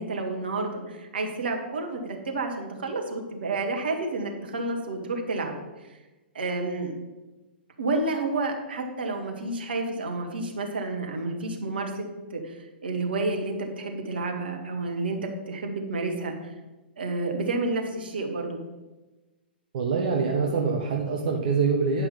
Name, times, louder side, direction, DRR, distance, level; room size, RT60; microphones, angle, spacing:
voice 1, 0.0-5.5 5.8-5.9 6.3-7.0 7.8-16.3 17.0-18.6, right 2 dB, 65° right, 2 dB, 1.8 m, -30 dB
voice 2, 19.7-22.1, right 5 dB, 45° right, 0 dB, 1.3 m, -25 dB
10.0 x 5.4 x 5.4 m, 1.1 s
figure-of-eight pair, 115°, 6 cm